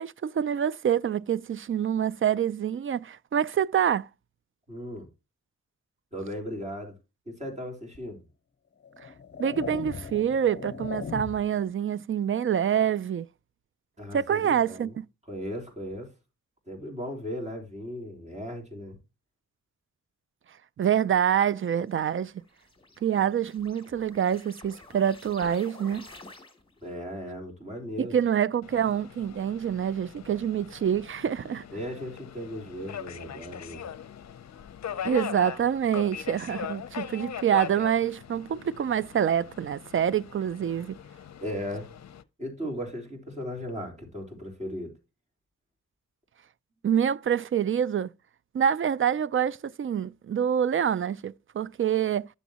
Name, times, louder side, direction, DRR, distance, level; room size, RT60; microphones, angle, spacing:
voice 1, 0.0-4.1 9.0-9.1 9.4-13.3 14.1-15.1 20.8-22.3 23.0-26.1 28.0-31.6 35.0-41.0 46.8-48.1 48.5-52.3, right 9 dB, 45° right, 0.4 m, -26 dB
voice 2, 4.7-5.1 6.1-7.0 7.3-8.2 14.0-15.0 15.3-16.1 16.7-19.0 26.8-28.2 31.7-33.8 41.4-41.9 42.4-44.9, equal, 25° right, 3.6 m, -37 dB
sound 1, 7.9-8.1 8.8-11.6, left 6 dB, 35° left, 0.9 m, -38 dB
sound 2, 21.9-26.9, left 2 dB, 15° left, 2.5 m, -50 dB
Subway metro underground, 28.6-42.2, left 8 dB, 65° left, 0.6 m, -40 dB
10.0 x 7.1 x 2.9 m
cardioid pair, 70°, 30 cm